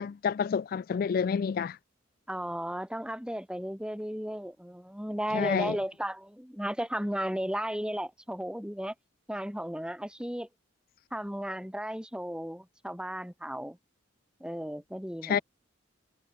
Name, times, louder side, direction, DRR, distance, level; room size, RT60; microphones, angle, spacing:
voice 1, 0.0-1.8 5.3-5.8 15.2-15.4, left 6 dB, 50° left, 0.3 m, -29 dB
voice 2, 2.3-8.9 9.3-10.5 11.1-13.8 14.4-15.4, equal, 5° right, 4.9 m, -35 dB
head